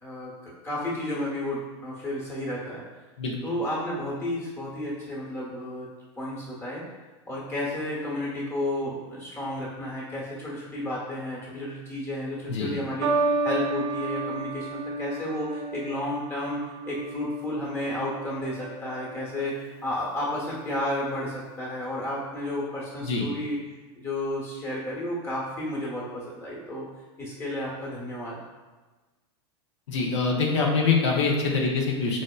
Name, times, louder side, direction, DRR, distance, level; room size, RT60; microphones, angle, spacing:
voice 1, 0.0-2.8 3.4-5.9 6.2-6.8 7.3-23.6 24.0-26.8 27.2-28.4, left 1 dB, 15° left, -5 dB, 1.0 m, -32 dB
sound 1, 13.0-19.5 20.4-20.8, right 3 dB, 90° right, 0.4 m, -32 dB
voice 2, 29.9-32.2, left 4 dB, 90° left, 0 dB, 0.5 m, -24 dB
4.0 x 2.0 x 2.2 m, 1.3 s
supercardioid pair, 120°, 15 cm